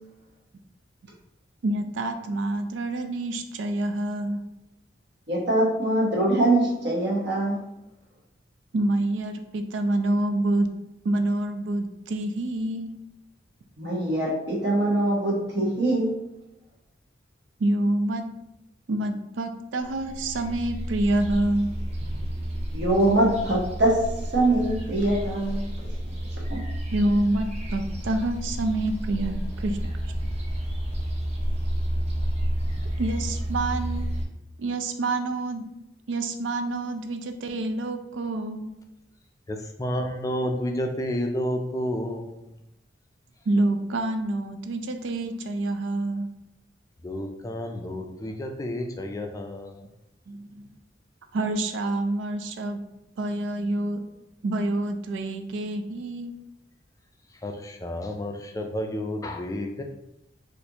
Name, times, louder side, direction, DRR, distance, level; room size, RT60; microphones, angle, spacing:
voice 1, 1.6-4.4 8.7-10.7 11.0-12.9 17.6-18.3 18.9-21.7 26.9-29.8 33.0-34.1 34.6-35.6 36.1-38.7 43.5-46.3 50.3-50.7 51.3-52.8 53.2-54.0 54.4-56.3, right 2 dB, 85° right, 6 dB, 0.4 m, -27 dB
voice 2, 5.3-7.6 13.8-16.1 22.7-24.0 24.3-25.6 26.5-26.6, right 1 dB, 60° right, -3 dB, 1.0 m, -23 dB
sound 1, 19.9-34.3, equal, 35° right, 0.5 m, -30 dB
voice 3, 39.5-42.4 47.0-49.9 57.4-59.8, equal, 20° left, 4 dB, 0.3 m, -30 dB
4.1 x 2.5 x 2.8 m, 0.88 s
head